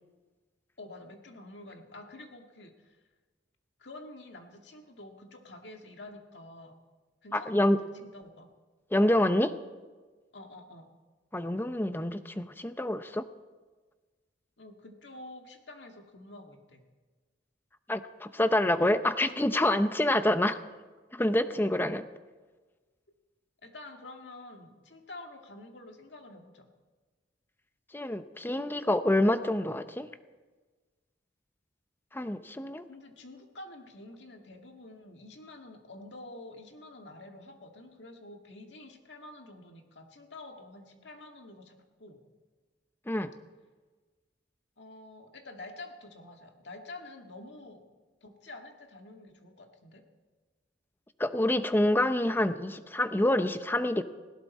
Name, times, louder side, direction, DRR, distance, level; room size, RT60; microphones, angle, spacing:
voice 1, 0.8-3.0 3.8-6.8 7.2-8.5 10.3-10.9 14.6-16.8 23.6-26.7 32.9-42.2 44.8-47.8 48.2-50.0, left 2 dB, 70° left, 3 dB, 1.9 m, -48 dB
voice 2, 7.3-7.8 8.9-9.5 11.3-13.3 17.9-20.6 21.1-22.1 27.9-30.1 32.1-32.8 43.1-43.3 51.2-54.0, left 1 dB, 10° left, 10 dB, 0.7 m, -27 dB
19.0 x 16.5 x 4.2 m, 1.3 s
head